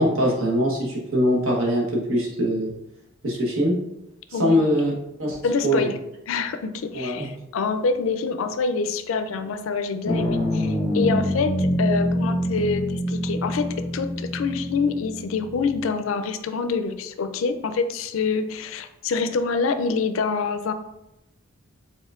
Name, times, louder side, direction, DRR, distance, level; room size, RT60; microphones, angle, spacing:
voice 1, 0.0-2.7 3.2-3.7 4.3-4.9 5.2-5.9 6.9-7.3, equal, 80° right, -2 dB, 1.1 m, -22 dB
voice 2, 4.3-4.6 5.4-6.0 6.3-20.7, left 4 dB, 70° left, 9 dB, 0.4 m, -26 dB
sound 1, 10.1-15.8, equal, 20° left, 0.6 m, -26 dB
4.3 x 3.8 x 2.4 m, 0.89 s
head